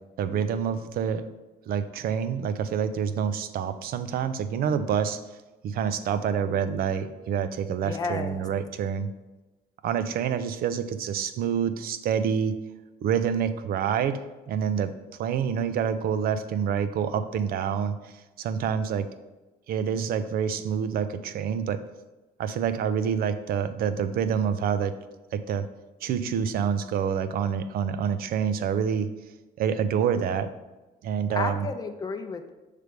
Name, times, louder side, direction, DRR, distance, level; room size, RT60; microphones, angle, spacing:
voice 1, 0.2-1.3 1.7-5.2 5.6-9.1 9.8-12.6 13.0-14.9 15.2-19.1 19.7-21.8 22.4-25.0 25.3-25.7 26.0-29.1 29.6-30.5 31.0-31.7, right 7 dB, 60° right, 11 dB, 0.5 m, -27 dB
voice 2, 7.8-8.4 31.3-32.5, left 4 dB, 20° left, 6 dB, 0.5 m, -32 dB
6.6 x 3.3 x 5.0 m, 1.1 s
cardioid pair, 110°, 17 cm